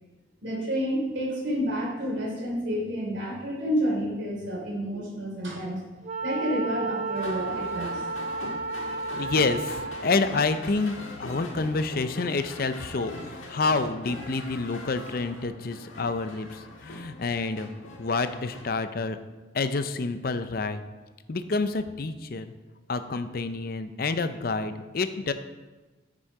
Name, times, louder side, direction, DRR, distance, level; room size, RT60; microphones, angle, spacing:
voice 1, 0.4-5.8 6.2-8.0, equal, 65° right, -4 dB, 3.3 m, -29 dB
Wind instrument woodwind instrument, 6.0-10.2, right 3 dB, 35° right, 0.8 m, -32 dB
sound 1, 7.1-18.6, left 1 dB, 85° left, 1.7 m, -41 dB
voice 2, 9.2-10.9 11.2-17.7 18.0-19.2 19.5-20.8 21.3-22.5 22.9-25.3, left 3 dB, 50° left, 10 dB, 0.5 m, -28 dB
9.8 x 6.3 x 4.8 m, 1.2 s
head